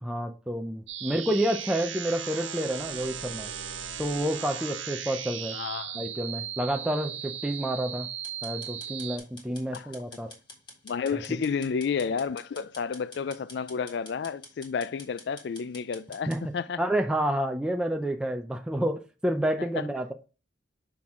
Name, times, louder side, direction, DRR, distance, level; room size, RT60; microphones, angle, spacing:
voice 1, 0.0-3.5 4.0-5.6 5.9-8.1 8.4-10.3 16.3-16.5 16.8-20.1, right 1 dB, 5° right, 0.5 m, -29 dB
sound 1, 0.9-9.2, right 9 dB, 85° right, 1.2 m, -37 dB
voice 2, 5.5-6.0 9.7-9.9 10.8-16.8, left 6 dB, 60° left, 0.3 m, -31 dB
sound 2, 8.2-16.4, left 2 dB, 25° left, 1.9 m, -48 dB
6.0 x 5.9 x 3.6 m
head